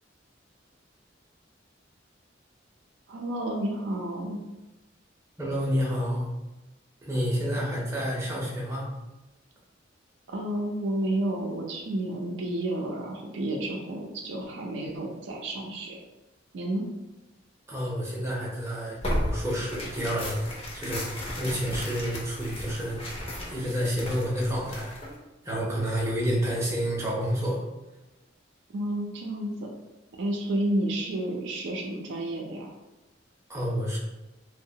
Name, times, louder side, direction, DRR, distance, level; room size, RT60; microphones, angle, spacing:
voice 1, 3.1-4.4 10.3-16.0 16.5-16.9 28.7-29.7 30.2-32.7, right 1 dB, 65° right, 0 dB, 0.4 m, -31 dB
voice 2, 5.4-6.3 7.0-8.9 17.7-23.0 23.5-24.9 25.4-27.6 33.5-34.0, equal, 15° right, -4 dB, 0.6 m, -29 dB
Tearing, 19.0-25.2, left 1 dB, 30° left, 0.5 m, -35 dB
2.7 x 2.1 x 2.7 m, 1.1 s
head